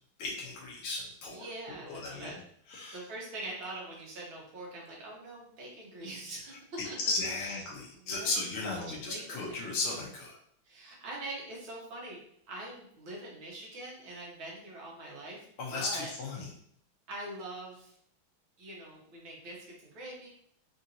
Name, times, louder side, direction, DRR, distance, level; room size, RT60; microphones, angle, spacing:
voice 1, 0.2-2.3 2.7-3.0 7.0-10.4 15.6-16.5, left 3 dB, 85° left, -3 dB, 1.7 m, -35 dB
voice 2, 1.3-2.4 2.9-6.5 6.8-7.0 7.9-8.8 9.1-9.7 10.7-12.2 12.5-15.4 15.7-16.1 17.1-17.9 18.6-20.3, right 2 dB, 75° right, -3 dB, 2.0 m, -43 dB
4.9 x 2.6 x 2.8 m, 0.64 s
omnidirectional pair, 2.3 m